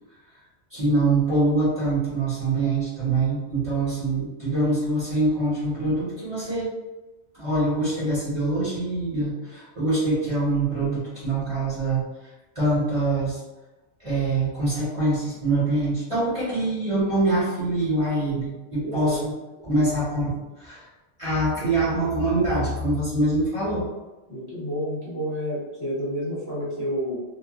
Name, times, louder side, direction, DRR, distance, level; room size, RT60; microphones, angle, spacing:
voice 1, 0.7-6.7 7.3-12.0 12.5-13.4 14.0-19.3 19.6-20.8 21.2-23.9, right 2 dB, 30° right, -11 dB, 1.3 m, -24 dB
voice 2, 18.8-19.2 24.3-27.2, equal, 20° left, -11 dB, 1.3 m, -29 dB
3.3 x 2.4 x 2.4 m, 1.1 s
omnidirectional pair, 1.2 m